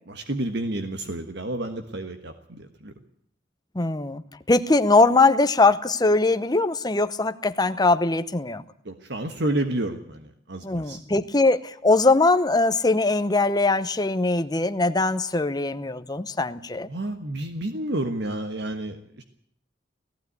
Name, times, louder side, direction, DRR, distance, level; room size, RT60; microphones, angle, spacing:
voice 1, 0.1-2.9 8.8-11.0 16.9-19.2, right 1 dB, 60° right, 6 dB, 1.5 m, -30 dB
voice 2, 3.7-4.2 4.5-8.6 10.6-16.9, left 3 dB, 20° left, 11 dB, 0.9 m, -21 dB
17.5 x 15.5 x 9.5 m, 0.68 s
head